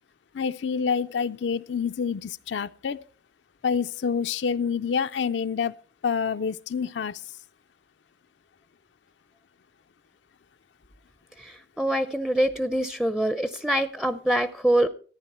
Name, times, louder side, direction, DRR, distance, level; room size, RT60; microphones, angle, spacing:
voice 1, 0.3-3.0 3.6-5.7 6.0-7.2, left 6 dB, 90° left, 0.4 m, -27 dB
voice 2, 11.4-14.9, right 1 dB, ahead, 0.4 m, -25 dB
14.0 x 9.8 x 4.2 m
head